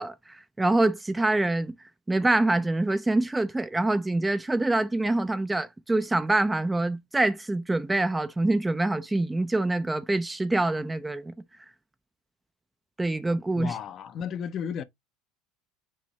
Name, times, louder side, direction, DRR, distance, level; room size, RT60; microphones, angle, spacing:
voice 1, 0.0-1.7 2.1-11.3 13.0-13.8, right 2 dB, 10° right, 0.4 m, -25 dB
voice 2, 13.5-14.8, left 7 dB, 45° left, 0.6 m, -33 dB
5.4 x 2.7 x 3.1 m
supercardioid pair, 105°, 0 cm